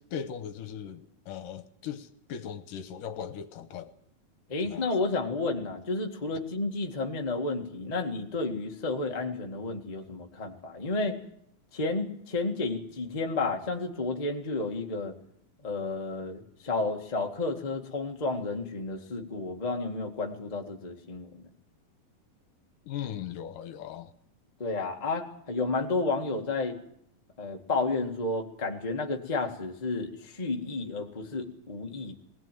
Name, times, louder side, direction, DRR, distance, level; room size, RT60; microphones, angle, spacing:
voice 1, 0.0-3.9 4.7-4.9 22.8-24.1, left 8 dB, 75° left, 2.5 m, -38 dB
voice 2, 4.5-11.2 11.7-15.1 15.6-21.4 24.6-26.7 27.4-32.1, left 3 dB, 20° left, 1.1 m, -31 dB
20.5 x 18.0 x 9.2 m
omnidirectional pair, 4.1 m